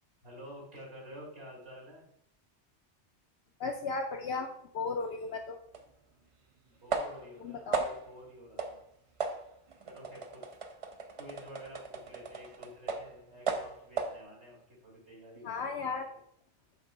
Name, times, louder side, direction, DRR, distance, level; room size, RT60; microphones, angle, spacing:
voice 1, 0.2-2.0 6.6-8.8 9.9-10.6 11.2-16.1, equal, 70° right, -4 dB, 2.8 m, -50 dB
voice 2, 3.6-5.6 7.4-7.8 15.4-16.1, left 4 dB, 70° left, 1 dB, 0.8 m, -35 dB
sound 1, 5.7-5.8 6.9-7.3 7.7-8.2 8.6-8.8 9.2-13.2 13.5-14.2, right 4 dB, 45° right, 0.4 m, -36 dB
5.9 x 3.5 x 5.3 m, 0.67 s
omnidirectional pair, 1.2 m